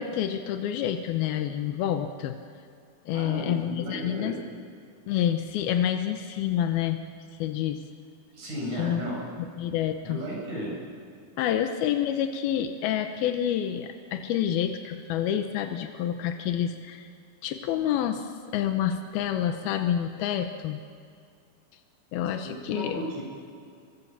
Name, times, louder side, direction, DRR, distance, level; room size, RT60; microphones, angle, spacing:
voice 1, 0.0-2.4 3.1-4.3 5.1-7.0 7.4-7.8 8.8-9.0 9.6-10.2 11.4-17.1 17.4-20.8 22.1-23.0, left 10 dB, 90° left, 6 dB, 2.9 m, -28 dB
voice 2, 3.1-4.4 8.3-9.2 10.0-10.8 22.4-23.2, equal, 55° right, -3 dB, 9.2 m, -34 dB
29.5 x 24.0 x 7.4 m, 2.3 s
omnidirectional pair, 4.2 m